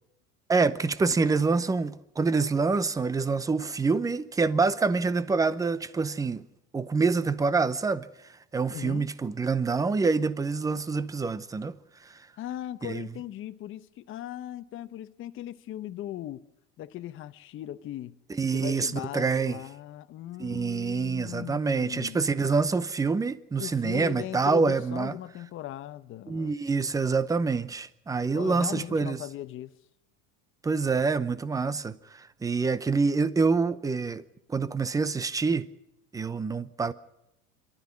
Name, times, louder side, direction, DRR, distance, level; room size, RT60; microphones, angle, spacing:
voice 1, 0.5-6.4 6.7-12.3 12.8-13.1 18.3-19.6 20.4-25.2 26.3-29.2 30.6-35.7 36.1-36.9, right 4 dB, 10° right, 0.7 m, -26 dB
voice 2, 8.7-9.0 12.4-16.4 16.8-18.2 18.5-22.2 23.6-26.5 28.3-29.7, left 13 dB, 35° left, 0.9 m, -38 dB
26.5 x 12.5 x 9.8 m
cardioid pair, 145°, 34 cm